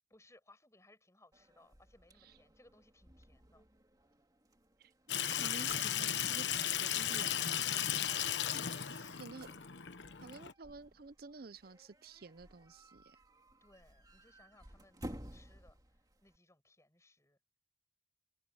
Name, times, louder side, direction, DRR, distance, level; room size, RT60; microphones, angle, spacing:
voice 1, 0.1-3.6 13.1-13.2 13.6-15.8 16.2-17.4, left 2 dB, 15° left, 6.7 m, -66 dB
sound 1, 1.3-16.4, right 1 dB, 20° right, 2.8 m, -56 dB
Water tap faucet / Sink (filling or washing), 5.1-10.5, left 10 dB, 90° left, 1.1 m, -35 dB
voice 2, 5.4-7.6 8.5-8.6 9.2-9.5 10.2-13.0, right 4 dB, 55° right, 0.6 m, -51 dB
open air
head